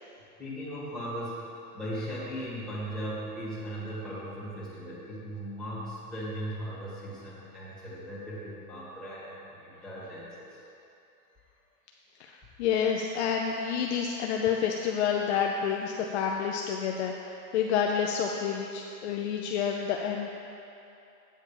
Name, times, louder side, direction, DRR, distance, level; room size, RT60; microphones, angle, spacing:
voice 1, 0.4-1.5 1.7-10.5, equal, ahead, -10 dB, 2.1 m, -38 dB
voice 2, 12.6-20.3, left 7 dB, 45° left, 1 dB, 0.6 m, -29 dB
8.8 x 6.5 x 4.9 m, 2.7 s
supercardioid pair, 155°, 46 cm